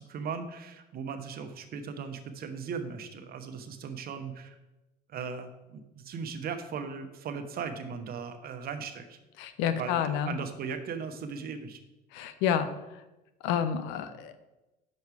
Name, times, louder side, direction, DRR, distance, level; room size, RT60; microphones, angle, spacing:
voice 1, 0.0-4.6 5.1-9.2 9.8-11.8, right 6 dB, 50° right, 8 dB, 0.9 m, -38 dB
voice 2, 9.4-10.4 12.1-13.0 13.4-14.3, left 8 dB, 70° left, 11 dB, 0.6 m, -29 dB
6.0 x 5.3 x 4.6 m, 1.0 s
hypercardioid pair, 75°, 20 cm